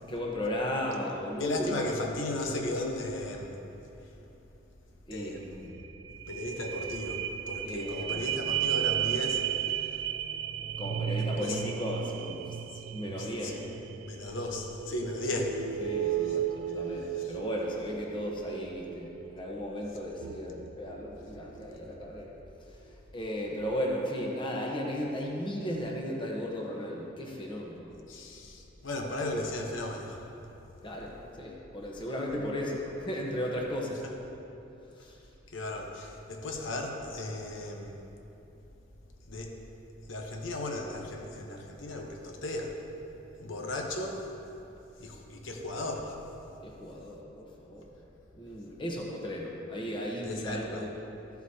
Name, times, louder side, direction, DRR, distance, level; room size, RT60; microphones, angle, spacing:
voice 1, 0.1-2.1 5.1-5.4 7.6-8.2 10.8-12.6 12.9-13.6 15.8-22.3 22.6-22.8 23.1-27.9 30.8-34.0 34.3-34.4 35.0-35.2 43.5-43.6 46.6-47.9 48.3-51.0, equal, 25° left, -1 dB, 1.0 m, -35 dB
voice 2, 1.4-3.6 5.1-5.7 6.3-9.4 11.4-11.6 13.2-13.7 14.0-15.6 17.2-17.3 28.1-30.2 34.0-34.1 35.5-38.0 39.3-39.5 40.1-42.8 43.4-44.2 45.0-46.2 50.2-50.8, left 1 dB, 85° left, 1 dB, 1.0 m, -35 dB
sound 1, 5.4-5.5 5.8-21.7 22.2-22.3, right 10 dB, 70° right, 0.3 m, -35 dB
13.5 x 8.0 x 2.8 m, 2.9 s
head